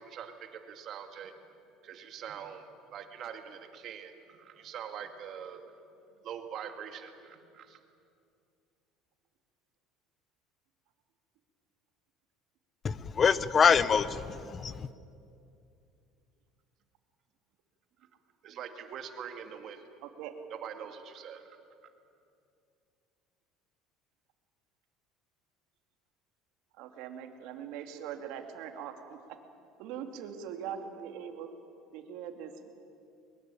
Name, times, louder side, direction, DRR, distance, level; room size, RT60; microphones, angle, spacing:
voice 1, 0.0-1.3 1.8-5.6 6.2-7.8 18.4-19.8 20.5-21.6, right 8 dB, 50° right, 6 dB, 2.2 m, -43 dB
voice 2, 12.8-14.9, left 6 dB, 30° left, 16 dB, 0.9 m, -25 dB
voice 3, 20.0-20.3 26.8-29.2 29.8-31.5 31.9-32.7, right 8 dB, 70° right, 5 dB, 2.7 m, -41 dB
22.5 x 22.0 x 8.6 m, 2.5 s
cardioid pair, 130°, 0 cm